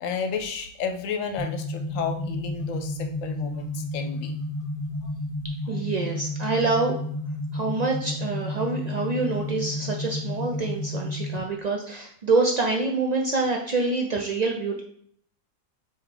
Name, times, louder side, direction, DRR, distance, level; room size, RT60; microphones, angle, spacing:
voice 1, 0.0-4.4 5.0-5.1 5.7-5.8, left 5 dB, 70° left, 6 dB, 1.0 m, -32 dB
sound 1, 1.4-11.4, left 1 dB, 35° left, 0.5 m, -31 dB
voice 2, 5.7-7.0 7.5-14.8, right 3 dB, 90° right, 1 dB, 0.3 m, -26 dB
3.6 x 3.0 x 4.8 m, 0.63 s
omnidirectional pair, 1.4 m